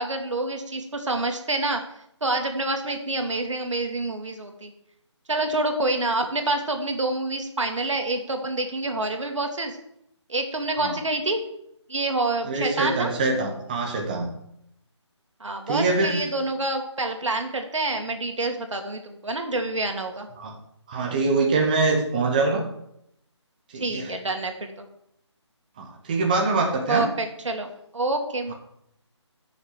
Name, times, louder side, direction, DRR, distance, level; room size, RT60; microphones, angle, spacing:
voice 1, 0.0-1.8 2.2-4.7 5.3-9.8 10.3-11.4 11.9-13.1 15.4-20.3 23.8-24.9 26.9-28.5, right 2 dB, 85° right, 4 dB, 2.1 m, -27 dB
voice 2, 12.4-14.3 15.7-16.2 20.4-20.5 20.9-22.6 23.7-24.1 25.8-27.1, right 3 dB, 15° right, 0 dB, 0.9 m, -24 dB
7.7 x 6.5 x 7.4 m, 0.76 s
figure-of-eight pair, 170°, 15 cm